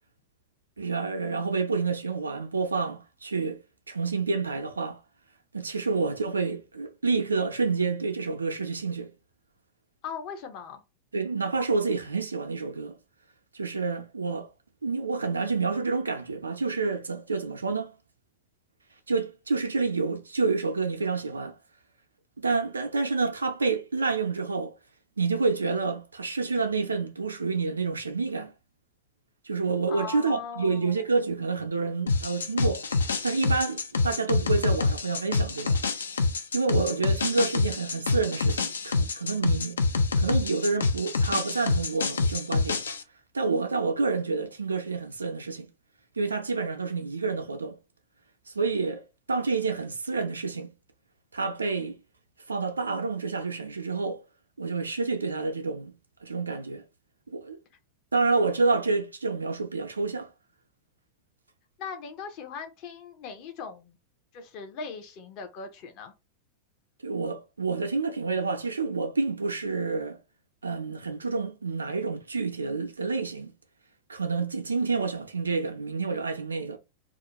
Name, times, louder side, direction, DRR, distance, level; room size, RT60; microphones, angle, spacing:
voice 1, 0.8-3.6 3.9-5.0 5.5-9.1 11.1-13.0 13.5-14.5 14.8-17.9 19.1-21.5 22.4-24.7 25.2-28.5 29.4-32.9 33.2-35.8 36.5-39.8 40.2-42.8 43.3-45.7 46.2-47.8 48.5-49.0 49.3-50.7 51.3-52.0 52.5-54.2 54.6-55.9 56.2-56.8 57.3-57.6 58.1-60.3 67.0-70.2 70.6-73.5 74.1-76.8, right 4 dB, 75° right, 0.4 m, -28 dB
voice 2, 10.0-10.8 29.9-31.1 61.8-64.0 64.3-66.1, left 5 dB, 40° left, 0.6 m, -39 dB
sound 1, 32.1-43.0, left 4 dB, 70° left, 0.3 m, -27 dB
2.4 x 2.1 x 2.9 m
figure-of-eight pair, 90°, 0 cm